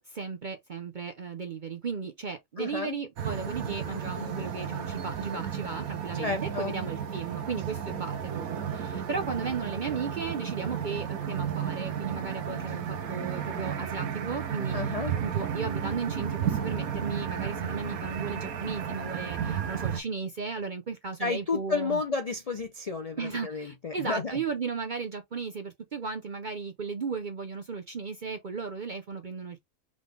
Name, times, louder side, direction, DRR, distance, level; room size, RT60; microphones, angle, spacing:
voice 1, 0.0-15.0 15.2-22.0 23.2-29.6, right 5 dB, 55° right, 0.5 m, -35 dB
voice 2, 2.6-3.0 6.2-6.7 14.7-15.1 21.2-24.4, left 4 dB, 65° left, 0.3 m, -31 dB
sound 1, 3.2-20.0, right 8 dB, 75° right, 1.3 m, -33 dB
3.7 x 3.6 x 3.3 m
omnidirectional pair, 1.5 m